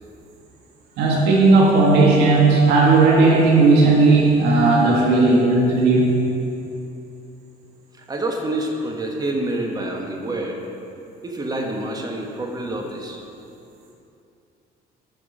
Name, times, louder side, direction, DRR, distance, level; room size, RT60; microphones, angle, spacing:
voice 1, 1.0-6.2, right 3 dB, 85° right, -3 dB, 2.0 m, -15 dB
voice 2, 8.0-10.6 11.2-13.2, right 1 dB, 25° right, 1 dB, 1.4 m, -27 dB
8.8 x 6.2 x 7.4 m, 2.7 s
cardioid pair, 110°, 17 cm